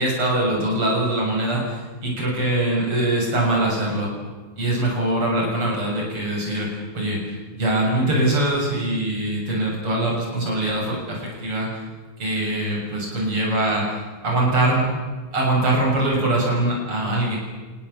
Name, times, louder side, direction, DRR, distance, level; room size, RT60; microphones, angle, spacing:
voice 1, 0.0-4.1 4.6-11.8 12.2-14.8 15.3-17.4, right 1 dB, 80° right, -2 dB, 7.9 m, -23 dB
28.5 x 20.0 x 8.6 m, 1.3 s
omnidirectional pair, 2.4 m